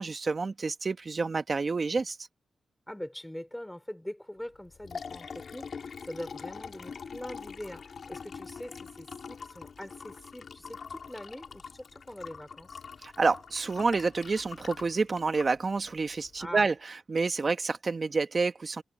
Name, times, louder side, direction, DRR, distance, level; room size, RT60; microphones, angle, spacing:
voice 1, 0.0-2.2 13.0-18.8, right 4 dB, 45° right, 1.4 m, -29 dB
voice 2, 2.9-5.7 6.0-12.8 16.4-16.6, left 1 dB, 5° left, 4.7 m, -43 dB
Liquid, 4.5-16.5, left 6 dB, 65° left, 3.4 m, -44 dB
wide cardioid pair, 100°, 0 cm